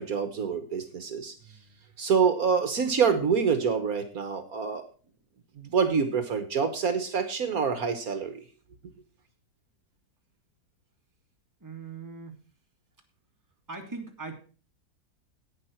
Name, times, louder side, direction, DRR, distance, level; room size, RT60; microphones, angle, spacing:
voice 1, 0.0-1.3 2.0-4.8 5.6-8.4, right 6 dB, 65° right, 9 dB, 1.6 m, -26 dB
voice 2, 1.4-1.8 11.6-12.4 13.7-14.4, right 4 dB, 10° right, 2 dB, 2.0 m, -41 dB
11.0 x 9.1 x 4.4 m, 0.38 s
omnidirectional pair, 1.7 m